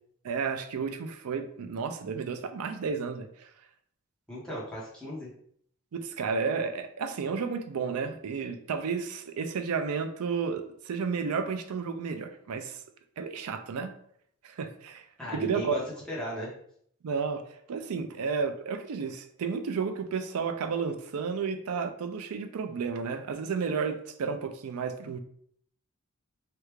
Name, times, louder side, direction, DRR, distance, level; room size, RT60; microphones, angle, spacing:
voice 1, 0.2-3.5 5.9-12.8 13.2-13.9 14.4-15.1 15.3-15.8 17.0-17.4 17.7-25.2, right 5 dB, 85° right, 8 dB, 0.4 m, -32 dB
voice 2, 4.3-5.3 15.2-15.8 16.1-16.5, equal, 5° left, -7 dB, 1.0 m, -36 dB
3.3 x 2.4 x 3.0 m, 0.64 s
head